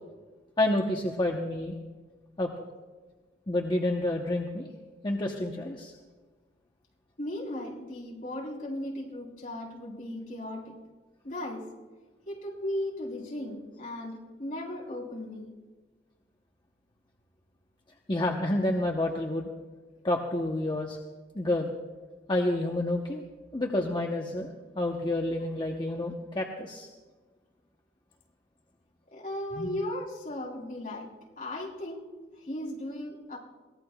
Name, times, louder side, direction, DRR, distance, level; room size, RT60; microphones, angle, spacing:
voice 1, 0.6-1.8 2.4-2.5 3.5-4.7 5.0-5.9 18.1-19.5 20.0-21.0 21.3-21.7 22.3-23.2 23.5-26.9 29.5-29.7, left 1 dB, 25° left, 1 dB, 0.9 m, -29 dB
voice 2, 7.2-10.8 11.2-11.7 12.3-15.6 29.1-33.4, left 1 dB, 50° left, -4 dB, 4.0 m, -36 dB
23.0 x 18.5 x 2.3 m, 1.3 s
head